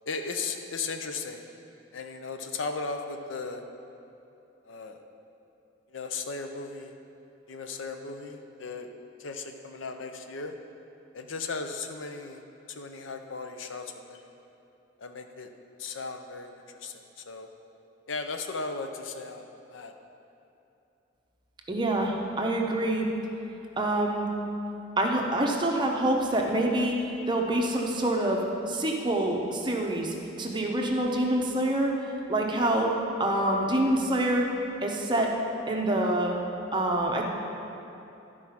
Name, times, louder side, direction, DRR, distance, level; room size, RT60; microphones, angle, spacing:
voice 1, 0.1-1.4 1.9-3.6 4.6-5.0 5.9-6.9 7.5-8.9 9.2-10.5 11.1-12.4 12.7-14.3 15.0-15.5 15.8-17.5 18.1-19.9, left 4 dB, 85° left, 6 dB, 0.6 m, -36 dB
voice 2, 21.7-23.1 23.8-24.3 25.0-34.5 34.8-35.3 35.7-36.4 36.7-37.2, right 1 dB, 25° right, 0 dB, 0.8 m, -26 dB
11.5 x 4.7 x 5.7 m, 2.8 s
head